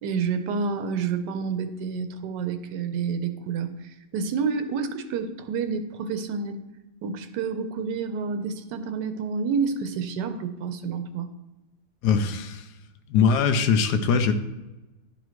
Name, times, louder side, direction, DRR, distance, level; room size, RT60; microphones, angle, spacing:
voice 1, 0.0-6.6 7.0-11.3, right 5 dB, 85° right, 9 dB, 1.3 m, -29 dB
voice 2, 12.0-12.7 13.1-14.3, left 6 dB, 75° left, 9 dB, 1.1 m, -21 dB
11.0 x 4.1 x 3.1 m, 1.0 s
omnidirectional pair, 1.8 m